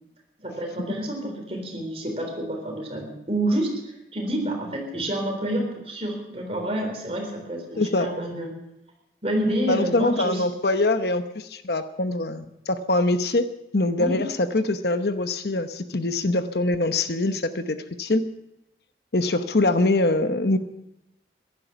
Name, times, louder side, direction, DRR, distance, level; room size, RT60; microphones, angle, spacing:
voice 1, 0.4-8.5 9.2-10.4 14.0-14.2, right 1 dB, 35° right, 2 dB, 3.8 m, -28 dB
voice 2, 7.8-8.1 9.7-13.5 13.7-18.2 19.1-20.6, left 2 dB, 65° left, 10 dB, 0.9 m, -23 dB
15.5 x 11.5 x 7.0 m, 0.85 s
head